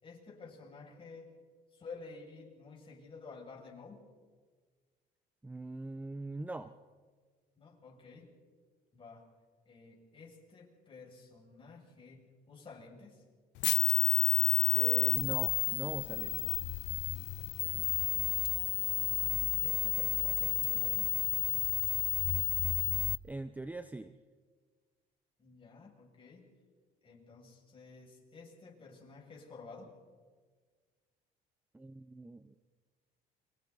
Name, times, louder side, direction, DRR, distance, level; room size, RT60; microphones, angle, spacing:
voice 1, 0.0-1.3 1.7-4.0 7.6-8.3 8.9-9.3 9.7-13.2 17.5-18.3 18.9-21.1 25.4-26.5 27.0-30.0, left 4 dB, 30° left, -2 dB, 7.0 m, -52 dB
voice 2, 5.4-6.7 14.7-16.6 22.8-23.0 23.2-24.2 31.7-32.6, right 2 dB, 10° right, 11 dB, 0.7 m, -42 dB
sound 1, 13.6-23.2, left 21 dB, 90° left, 0.6 m, -31 dB
30.0 x 26.0 x 4.1 m, 1.5 s
cardioid pair, 110°, 17 cm